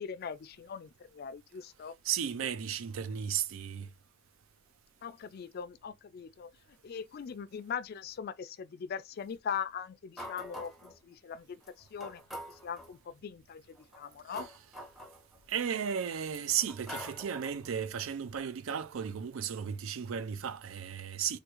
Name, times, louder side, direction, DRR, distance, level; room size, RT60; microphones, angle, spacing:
voice 1, 0.0-2.0 5.0-12.2 12.5-14.5, left 7 dB, 50° left, 0.3 m, -41 dB
voice 2, 2.0-3.9 15.5-21.4, right 8 dB, 80° right, 0.4 m, -34 dB
sound 1, 10.2-11.0 11.6-11.7 12.0-12.9 13.8-15.6 16.2-17.7, equal, ahead, 0.5 m, -45 dB
3.5 x 2.3 x 2.9 m
head